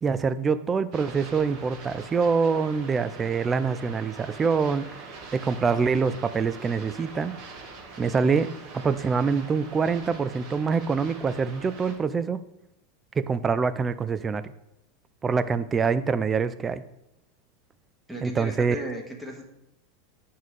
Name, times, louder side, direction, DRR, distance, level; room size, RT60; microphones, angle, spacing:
voice 1, 0.0-4.9 5.3-7.3 8.0-12.4 13.2-14.5 15.2-16.8 18.2-18.8, right 5 dB, 25° right, 13 dB, 0.5 m, -25 dB
sound 1, 0.9-12.0, right 4 dB, 55° right, 2.5 m, -44 dB
voice 2, 18.1-19.4, right 1 dB, 5° right, 0 dB, 1.6 m, -35 dB
9.0 x 5.5 x 3.3 m, 0.85 s
hypercardioid pair, 95°, 0 cm